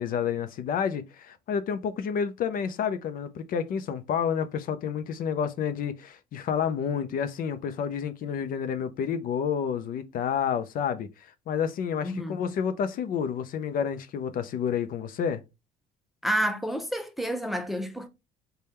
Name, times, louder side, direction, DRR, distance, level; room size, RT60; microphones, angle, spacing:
voice 1, 0.0-15.4, left 7 dB, 55° left, 0.5 m, -29 dB
voice 2, 12.0-12.4 16.2-18.1, equal, ahead, 0.5 m, -29 dB
3.4 x 2.2 x 4.2 m
cardioid pair, 110°, 17 cm